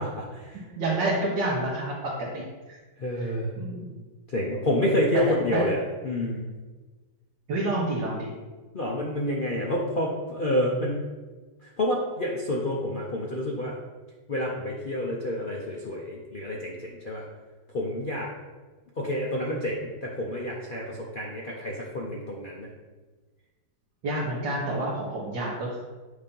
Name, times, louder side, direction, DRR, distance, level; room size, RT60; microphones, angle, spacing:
voice 1, 0.0-0.5 3.0-3.5 4.3-6.5 8.7-11.1 11.8-13.8 14.3-17.2 17.7-18.3 19.0-22.7, left 1 dB, 60° left, -3 dB, 0.5 m, -28 dB
voice 2, 0.5-2.8 3.1-4.0 5.1-5.7 7.5-8.3 24.0-25.8, right 2 dB, 75° right, -5 dB, 1.8 m, -29 dB
8.2 x 2.8 x 5.3 m, 1.3 s
omnidirectional pair, 2.0 m